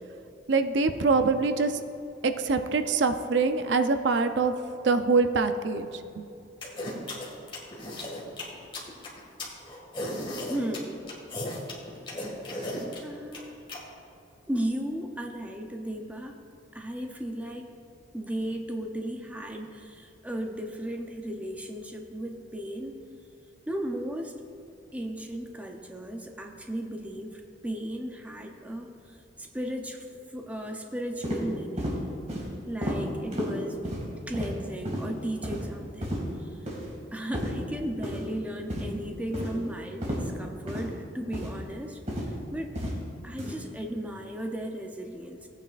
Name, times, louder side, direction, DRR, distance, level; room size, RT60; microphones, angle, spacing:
voice 1, 0.5-1.8 2.2-4.5 4.8-5.9 6.2-6.3, right 4 dB, 70° right, 8 dB, 0.6 m, -24 dB
sound 1, 6.6-13.8, left 1 dB, 30° left, 2.0 m, -35 dB
voice 2, 10.4-11.1 13.0-13.6 14.5-16.4 16.7-17.7 18.1-22.9 23.7-24.4 24.9-31.9 32.6-33.8 34.3-36.6 37.1-42.7 43.2-45.5, right 1 dB, 10° right, 2 dB, 0.7 m, -35 dB
sound 2, 31.2-31.4 31.8-32.0 32.3-32.5 32.8-33.0 33.3-33.5 33.8-34.0 34.3-34.5 34.8-35.0 35.4-35.6 36.0-36.2 36.7-36.9 37.3-37.5 38.0-38.2 38.7-38.9 39.3-39.5 40.0-40.2 40.7-40.8 41.3-41.5 42.1-42.3 42.8-42.9 43.4-43.5, equal, 40° right, 2.2 m, -31 dB
17.0 x 9.0 x 2.5 m, 2.6 s
head